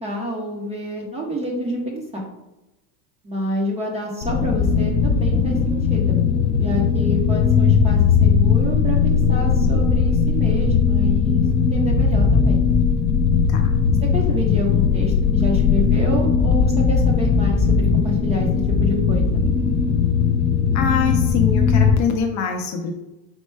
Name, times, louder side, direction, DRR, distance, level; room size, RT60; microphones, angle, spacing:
voice 1, 0.0-2.3 3.2-6.2 6.6-12.6 14.0-18.5 18.8-19.2, equal, 15° right, -1 dB, 0.5 m, -28 dB
sound 1, 4.2-22.0, left 6 dB, 70° left, 0.8 m, -18 dB
voice 2, 20.7-23.0, left 6 dB, 40° left, 4 dB, 0.5 m, -24 dB
4.3 x 2.1 x 4.5 m, 0.97 s
supercardioid pair, 135°, 49 cm